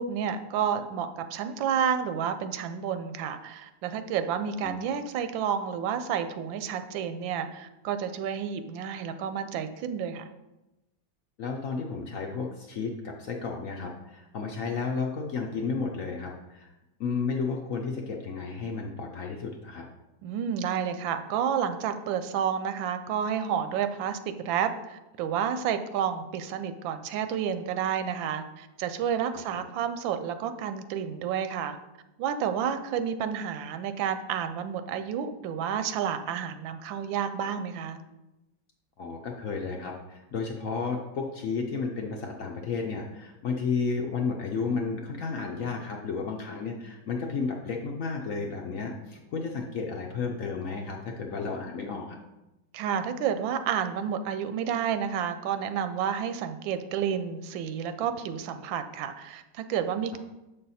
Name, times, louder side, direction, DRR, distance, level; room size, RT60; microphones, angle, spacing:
voice 1, 0.0-10.2 20.2-31.8 32.2-38.0 52.7-60.2, right 8 dB, 90° right, 10 dB, 1.3 m, -30 dB
voice 2, 11.4-16.7 17.0-19.9 29.5-29.6 39.0-52.2, left 4 dB, 65° left, 1 dB, 0.8 m, -32 dB
7.2 x 5.5 x 4.1 m, 0.99 s
omnidirectional pair, 2.0 m